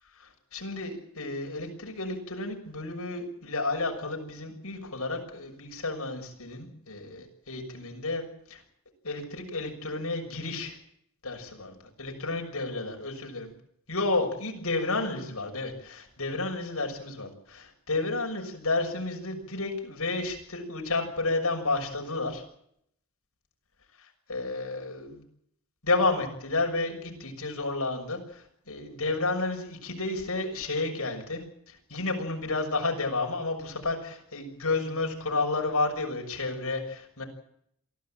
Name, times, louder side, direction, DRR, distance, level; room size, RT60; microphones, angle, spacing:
voice 1, 0.5-8.2 8.5-8.6 9.0-10.7 11.2-13.5 13.9-22.4 24.3-25.2 25.8-31.4 31.9-37.2, left 3 dB, 75° left, 2 dB, 6.4 m, -31 dB
23.5 x 15.5 x 8.8 m, 0.72 s
head